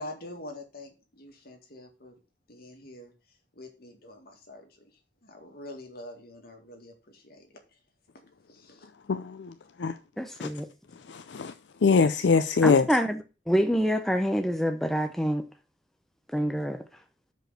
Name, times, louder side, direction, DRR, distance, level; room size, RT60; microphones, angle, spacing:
voice 1, 0.0-2.2 2.5-4.9 5.2-7.8 8.5-8.9, left 1 dB, 55° left, 2.1 m, -45 dB
voice 2, 9.1-9.5 9.8-10.0 10.4-10.5 11.1-11.5 11.8-12.9, left 4 dB, 70° left, 0.5 m, -23 dB
voice 3, 10.2-10.7 12.6-15.4 16.3-16.8, equal, ahead, 0.5 m, -26 dB
6.2 x 5.2 x 6.4 m
head